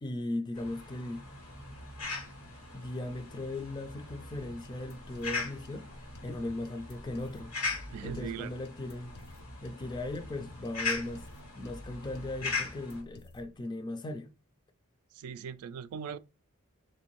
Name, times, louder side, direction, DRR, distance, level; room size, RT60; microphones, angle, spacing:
voice 1, 0.0-1.2 2.7-5.9 6.2-7.5 8.0-9.1 9.6-11.3 11.6-14.3, left 2 dB, 20° left, 0.3 m, -38 dB
sound 1, 0.5-13.0, left 3 dB, 90° left, 1.4 m, -40 dB
sound 2, 4.3-13.6, left 1 dB, 50° left, 0.7 m, -51 dB
voice 2, 7.9-8.5 15.1-16.2, right 7 dB, 85° right, 0.3 m, -40 dB
3.3 x 2.6 x 3.0 m
head